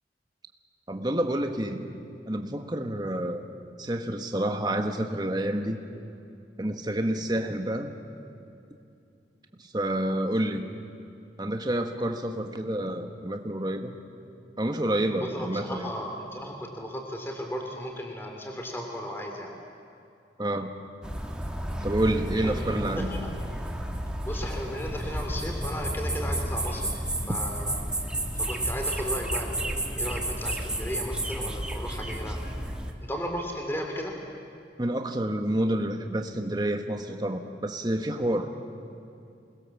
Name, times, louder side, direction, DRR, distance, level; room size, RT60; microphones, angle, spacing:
voice 1, 0.9-1.9 2.3-3.4 3.8-5.8 6.6-7.9 9.6-10.7 11.4-13.9 14.6-15.9 20.4-20.7 21.8-23.1 27.3-27.4 34.8-38.5, right 1 dB, 25° right, 5 dB, 1.3 m, -28 dB
voice 2, 15.2-19.5 22.4-22.6 23.0-23.3 24.2-27.8 28.3-32.4 33.0-34.2, equal, 15° left, 1 dB, 3.0 m, -35 dB
sound 1, 21.0-32.9, right 1 dB, 5° right, 1.3 m, -31 dB
27.5 x 20.5 x 7.2 m, 2.6 s
head